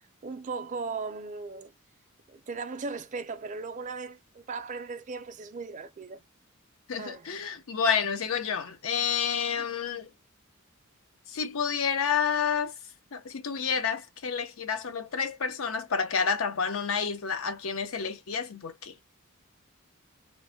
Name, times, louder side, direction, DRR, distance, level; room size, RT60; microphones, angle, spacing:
voice 1, 0.2-1.7 2.3-6.2 7.0-7.3 9.6-9.7, right 4 dB, 35° right, 0.4 m, -37 dB
voice 2, 6.9-10.1 11.3-12.7 13.1-18.9, left 6 dB, 75° left, 0.6 m, -29 dB
3.1 x 2.1 x 2.6 m
head